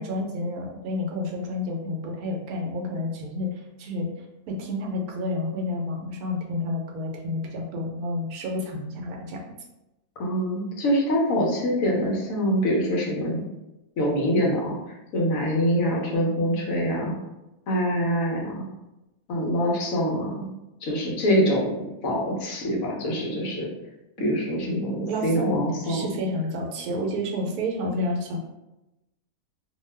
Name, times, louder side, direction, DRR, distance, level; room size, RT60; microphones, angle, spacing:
voice 1, 0.0-4.1 4.5-9.4 24.2-24.3 24.6-24.8 25.1-28.4, left 1 dB, 80° right, 0 dB, 1.1 m, -30 dB
voice 2, 10.2-13.4 14.0-17.1 17.7-18.7 19.3-20.5 20.8-23.7 24.2-26.0, equal, 70° left, -2 dB, 1.0 m, -25 dB
2.6 x 2.2 x 3.2 m, 0.97 s
omnidirectional pair, 1.6 m